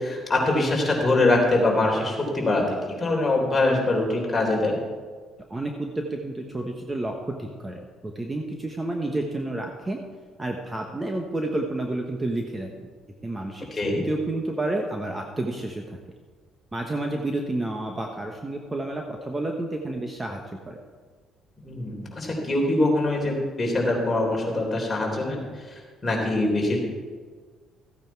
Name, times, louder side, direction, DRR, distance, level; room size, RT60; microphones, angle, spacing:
voice 1, 0.0-4.8 13.7-14.0 21.6-25.7 26.0-26.8, left 2 dB, 20° left, -1 dB, 3.3 m, -23 dB
voice 2, 5.5-10.0 10.4-12.7 13.2-13.7 14.0-16.0 16.7-20.8, right 2 dB, 15° right, 2 dB, 1.1 m, -30 dB
14.5 x 9.0 x 4.6 m, 1.5 s
cardioid pair, 115°, 0 cm